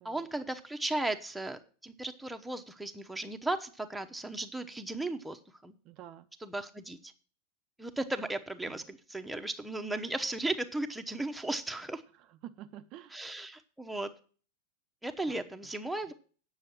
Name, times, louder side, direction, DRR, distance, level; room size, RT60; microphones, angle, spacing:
voice 1, 0.0-5.7 6.4-7.1 7.8-12.0 13.1-14.1 15.0-16.1, right 2 dB, 5° right, 5 dB, 0.9 m, -36 dB
voice 2, 5.8-6.3 8.6-8.8 12.1-13.2 15.3-15.4 16.1-16.2, right 12 dB, 40° right, 8 dB, 0.6 m, -49 dB
9.1 x 6.3 x 7.6 m, 0.40 s
figure-of-eight pair, 90°, 0 cm